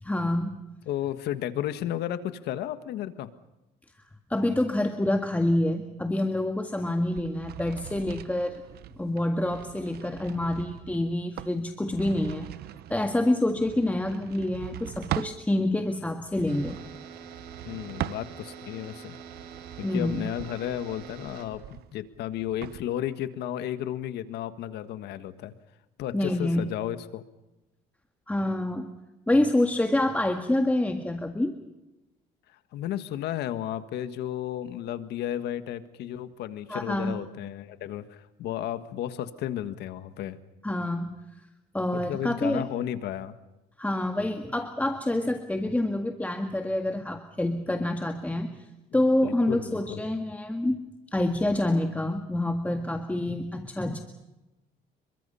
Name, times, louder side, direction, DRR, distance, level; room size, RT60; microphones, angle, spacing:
voice 1, 0.0-0.6 4.3-8.6 9.0-12.5 12.9-16.8 19.8-20.3 26.1-26.7 28.3-28.9 29.3-31.5 36.7-37.2 40.6-41.2 41.7-42.7 43.8-48.5 48.9-50.8 51.1-54.0, left 1 dB, 10° left, 5 dB, 1.8 m, -27 dB
voice 2, 0.9-3.3 13.5-13.6 17.6-19.2 19.8-25.5 26.0-27.2 32.7-40.4 41.9-43.3 49.2-50.0, left 11 dB, 80° left, 11 dB, 1.6 m, -33 dB
sound 1, 7.1-15.4 16.2-18.7 19.2-22.8, right 13 dB, 70° right, 0.9 m, -40 dB
sound 2, 16.5-21.5, right 7 dB, 85° right, 4.9 m, -45 dB
28.5 x 23.0 x 5.6 m, 1.0 s
cardioid pair, 110°, 17 cm